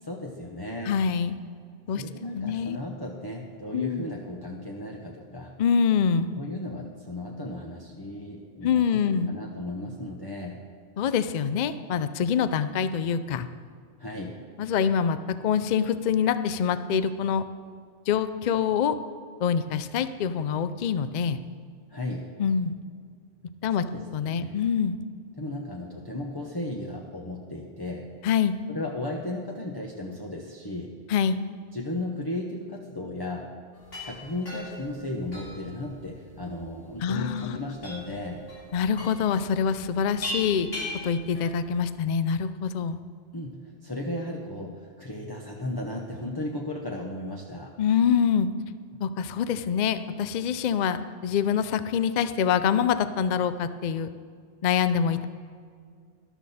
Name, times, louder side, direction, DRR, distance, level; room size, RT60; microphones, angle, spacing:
voice 1, 0.0-0.9 2.0-5.5 6.4-10.6 14.0-14.4 21.9-22.3 23.8-24.6 25.4-28.1 28.7-31.0 31.7-33.5 34.0-38.4 43.3-47.7, left 1 dB, 20° left, -1 dB, 1.0 m, -35 dB
voice 2, 0.9-1.4 1.9-2.0 2.3-2.8 3.7-4.1 5.6-6.3 8.6-9.3 11.0-13.5 14.6-15.2 15.4-17.4 18.1-19.0 19.4-21.4 22.4-22.7 23.6-23.8 24.1-25.0 28.2-28.6 31.1-31.4 37.0-37.6 38.7-40.7 41.0-43.0 47.8-48.5 49.0-54.1 54.6-55.2, left 7 dB, 50° left, 12 dB, 0.5 m, -25 dB
sound 1, 33.7-41.8, left 2 dB, 90° left, 3.3 m, -39 dB
13.0 x 12.5 x 4.2 m, 2.1 s
omnidirectional pair, 1.2 m